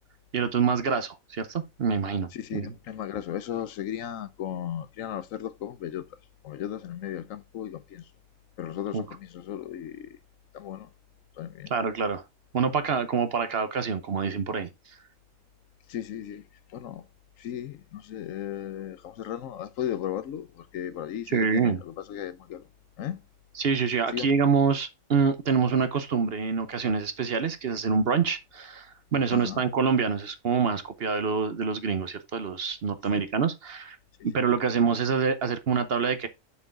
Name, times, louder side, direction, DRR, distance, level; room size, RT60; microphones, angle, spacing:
voice 1, 0.3-2.7 8.9-9.0 11.7-12.2 12.5-14.7 21.3-21.8 23.6-34.0 34.2-36.3, right 5 dB, 50° right, 0.9 m, -26 dB
voice 2, 2.3-6.0 6.4-8.1 8.6-10.2 10.5-10.9 11.4-11.7 15.9-17.1 17.4-22.7 23.0-23.2 24.1-24.3 29.3-29.6 33.1-33.2, left 10 dB, 75° left, 1.1 m, -36 dB
7.0 x 4.6 x 4.7 m
omnidirectional pair, 1.4 m